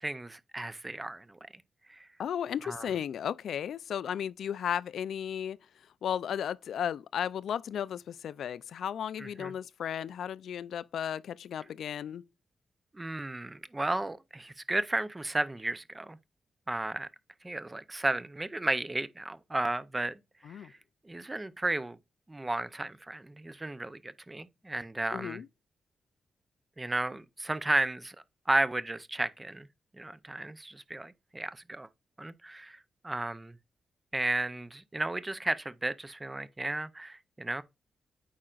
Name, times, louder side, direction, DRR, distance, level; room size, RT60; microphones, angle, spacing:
voice 1, 0.0-1.4 1.9-2.1 2.6-2.9 9.2-9.5 12.9-16.2 16.7-17.1 17.4-20.1 20.5-20.7 21.1-22.0 22.3-25.4 26.8-28.2 28.5-29.7 30.0-31.9 32.2-33.6 34.1-37.6, right 2 dB, 15° right, 0.4 m, -33 dB
voice 2, 2.2-5.6 6.0-12.2 20.4-20.7 25.1-25.5, left 9 dB, 80° left, 0.3 m, -34 dB
8.6 x 5.0 x 2.3 m
wide cardioid pair, 165°, 0 cm